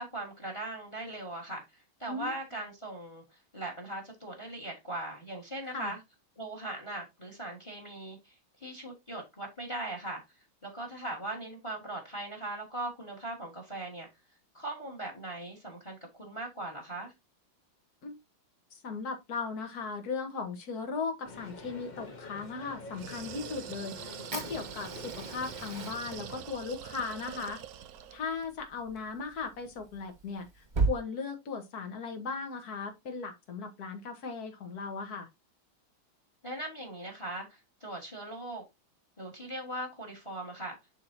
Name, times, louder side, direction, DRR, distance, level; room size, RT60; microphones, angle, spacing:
voice 1, 0.0-3.2 3.5-6.0 6.4-10.2 10.6-14.1 14.5-17.1 36.4-38.6 39.2-40.8, right 1 dB, 15° left, 2.0 m, -39 dB
voice 2, 18.7-27.6 28.1-35.3, left 4 dB, 50° left, 1.8 m, -37 dB
sound 1, 21.2-26.4, left 3 dB, 30° left, 0.8 m, -47 dB
sound 2, 22.9-28.3, right 10 dB, 70° right, 0.9 m, -44 dB
Fire, 24.3-30.9, right 4 dB, 25° right, 1.4 m, -37 dB
11.0 x 3.8 x 2.8 m
omnidirectional pair, 2.2 m